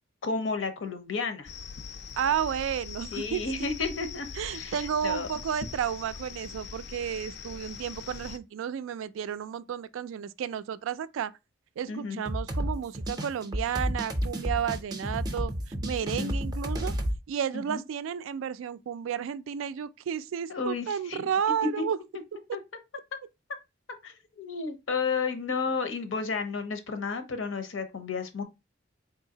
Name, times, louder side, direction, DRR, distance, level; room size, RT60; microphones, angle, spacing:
voice 1, 0.2-1.5 3.1-4.3 4.5-5.3 11.9-12.2 16.1-16.3 17.5-17.8 20.5-21.3 21.8-21.9 22.5-22.6 24.0-28.4, left 4 dB, 80° left, 0.7 m, -32 dB
sound 1, 1.4-8.4, left 5 dB, 55° left, 0.4 m, -42 dB
voice 2, 2.2-3.4 4.3-11.3 11.8-16.9 17.3-22.0, right 8 dB, 85° right, 0.3 m, -32 dB
sound 2, 12.3-17.2, equal, 20° right, 0.5 m, -31 dB
3.8 x 2.7 x 2.7 m
head